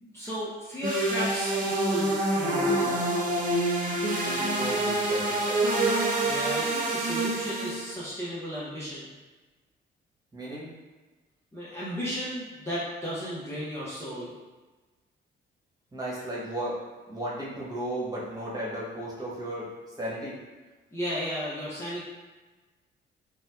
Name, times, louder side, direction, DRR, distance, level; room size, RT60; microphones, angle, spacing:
voice 1, 0.0-3.0 6.2-9.1 11.5-14.3 20.9-22.0, equal, 15° left, -9 dB, 0.7 m, -34 dB
sound 1, 0.8-7.9, right 2 dB, 45° right, 0.6 m, -26 dB
voice 2, 4.2-5.9 10.3-10.7 15.9-16.8 17.1-19.7 20.0-20.4, right 1 dB, 20° right, -7 dB, 1.2 m, -35 dB
2.7 x 2.2 x 3.3 m, 1.2 s
cardioid pair, 90°, 20 cm